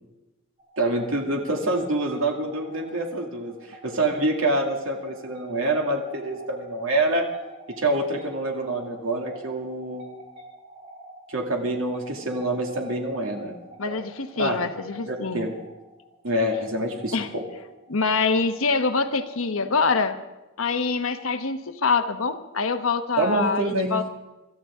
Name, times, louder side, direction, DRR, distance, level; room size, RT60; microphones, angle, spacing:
sound 1, 0.6-20.0, right 1 dB, 35° right, 4.7 m, -47 dB
voice 1, 0.8-7.3 7.7-10.1 11.3-13.5 13.9-14.0 14.4-14.6 15.1-15.6 16.2-17.4 23.2-23.9, right 1 dB, 75° right, 1 dB, 2.4 m, -26 dB
voice 2, 13.8-15.5 17.1-17.3 17.9-20.2 20.6-24.1, left 4 dB, 85° left, 8 dB, 1.1 m, -25 dB
26.0 x 13.5 x 3.7 m, 1.1 s
head